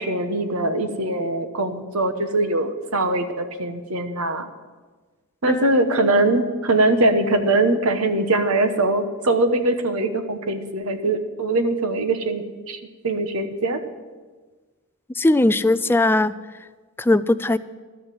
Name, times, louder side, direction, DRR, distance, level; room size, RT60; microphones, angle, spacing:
voice 1, 0.0-4.5 5.4-13.8, right 2 dB, 85° right, 8 dB, 1.1 m, -22 dB
voice 2, 15.2-16.3 17.0-17.6, left 2 dB, 10° left, 13 dB, 0.3 m, -19 dB
12.5 x 6.4 x 9.0 m, 1.3 s
head